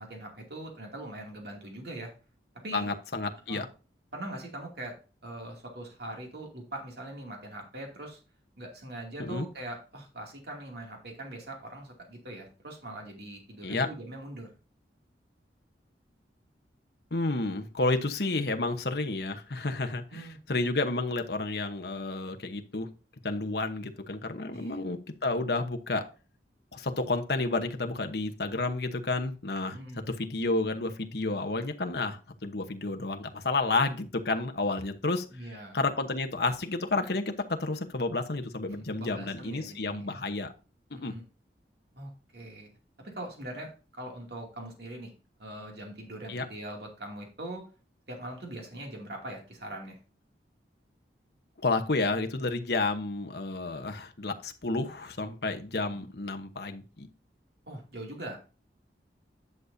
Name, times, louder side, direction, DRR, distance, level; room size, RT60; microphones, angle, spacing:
voice 1, 0.0-2.1 2.6-2.9 3.5-3.6 4.1-4.9 5.2-8.2 8.6-14.5 20.1-20.4 24.5-24.8 29.7-30.0 35.3-35.8 38.7-40.1 40.9-41.2 41.9-42.7 43.0-45.1 45.4-47.6 48.1-50.0 55.9-56.0 57.7-58.4, right 1 dB, 65° right, 1 dB, 2.5 m, -42 dB
voice 2, 2.7-3.6 9.2-9.5 13.6-13.9 17.1-22.9 23.2-26.1 26.7-29.8 30.1-35.3 35.7-40.5 41.0-41.1 46.3-46.4 51.6-57.1, left 3 dB, 65° left, 5 dB, 1.1 m, -31 dB
10.5 x 6.6 x 2.7 m, 0.33 s
head